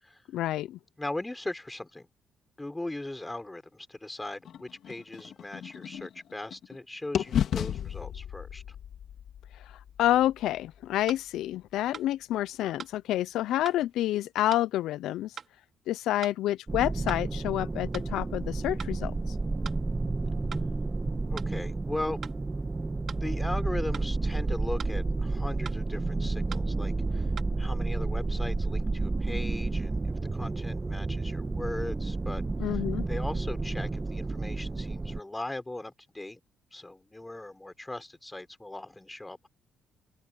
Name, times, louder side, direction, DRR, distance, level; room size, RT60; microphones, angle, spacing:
voice 1, 0.3-0.8 9.6-15.3 15.9-19.3 32.6-33.0, left 14 dB, 85° left, 0.5 m, -29 dB
voice 2, 1.0-2.1 2.6-8.8 21.3-22.2 23.2-27.3 27.6-30.0 30.3-32.4 32.7-36.4 36.7-39.5, left 2 dB, 15° left, 5.4 m, -39 dB
sound 1, 4.4-6.8 7.1-11.1, left 9 dB, 70° left, 3.2 m, -35 dB
sound 2, 11.1-11.2 11.9-12.1 12.8-13.0 13.7-13.8 14.5-14.7 15.4-15.5 16.2-16.4 17.1-17.2 17.9-18.1 18.8-19.0 19.6-19.8 20.5-20.7 21.4-21.5 22.2-22.4 23.1-23.3 23.9-24.1 24.8-25.0 25.7-25.8 26.5-26.7 27.4-27.5, right 7 dB, 50° right, 2.9 m, -42 dB
sound 3, 16.7-35.2, right 3 dB, 25° right, 1.2 m, -31 dB
open air
cardioid pair, 90°, 0 cm